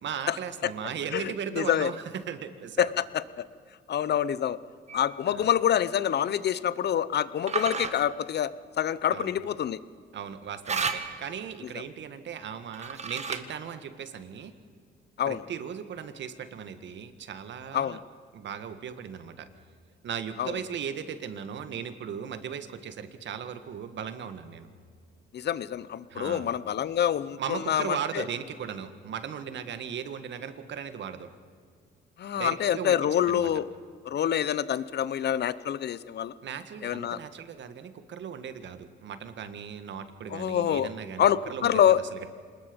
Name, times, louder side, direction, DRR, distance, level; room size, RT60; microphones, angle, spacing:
voice 1, 0.0-2.9 5.3-5.5 9.1-9.3 10.1-14.5 15.3-18.0 18.3-19.5 20.0-24.7 26.1-26.5 27.4-31.3 32.3-33.0 33.2-33.5 36.4-42.3, right 8 dB, 65° right, 10 dB, 1.7 m, -37 dB
voice 2, 1.1-1.9 2.8-3.4 3.9-4.6 4.9-9.8 15.2-15.4 17.7-18.0 20.4-20.6 25.3-28.2 32.2-33.7 34.0-36.3 36.8-37.2 40.3-40.9 41.2-42.0, left 10 dB, 55° left, 17 dB, 0.8 m, -26 dB
sound 1, 4.9-5.2 7.5-7.9 10.6-11.3 12.7-13.6, right 5 dB, 35° right, 1.7 m, -32 dB
26.0 x 20.5 x 5.3 m, 2.1 s
cardioid pair, 90°, 20 cm